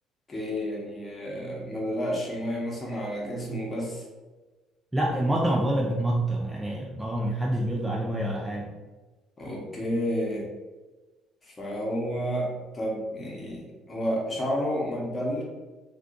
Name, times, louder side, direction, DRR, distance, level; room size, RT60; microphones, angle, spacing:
voice 1, 0.3-4.0 9.4-10.5 11.4-15.4, equal, 25° left, -2 dB, 0.9 m, -31 dB
voice 2, 4.9-8.7, right 1 dB, 10° right, -2 dB, 0.4 m, -27 dB
2.5 x 2.4 x 3.6 m, 1.2 s
cardioid pair, 115°, 0 cm